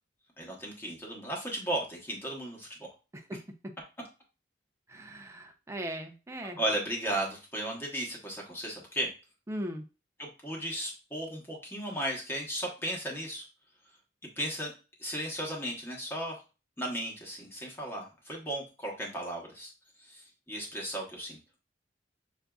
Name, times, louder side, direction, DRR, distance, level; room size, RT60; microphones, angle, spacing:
voice 1, 0.4-2.9 6.4-9.1 10.2-13.4 14.4-14.7 15.0-16.4 16.8-19.7 20.1-21.4, right 1 dB, 10° left, -1 dB, 1.1 m, -35 dB
voice 2, 4.9-6.6 9.5-9.8, right 1 dB, 15° right, 5 dB, 0.5 m, -38 dB
6.3 x 2.7 x 2.3 m, 0.32 s
head